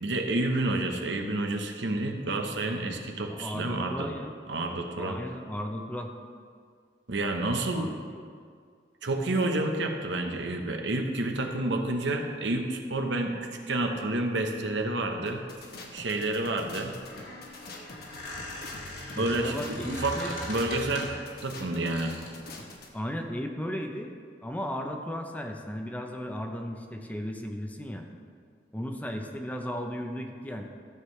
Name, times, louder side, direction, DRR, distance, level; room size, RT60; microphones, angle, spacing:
voice 1, 0.0-4.1 4.5-5.2 7.1-7.9 9.0-15.4 15.9-16.9 19.2-20.2 20.5-21.1 21.4-22.2, right 2 dB, 75° right, 4 dB, 0.9 m, -29 dB
voice 2, 3.3-4.3 5.0-6.1 7.7-8.2 19.1-20.4 22.9-24.1 24.4-28.1 28.7-30.6, equal, 10° left, 3 dB, 0.6 m, -35 dB
sound 1, 15.3-22.9, left 3 dB, 60° left, 1.1 m, -45 dB
Squeak, 16.9-21.3 21.9-22.4, left 1 dB, 75° left, 2.6 m, -40 dB
13.5 x 7.3 x 3.2 m, 2.1 s
head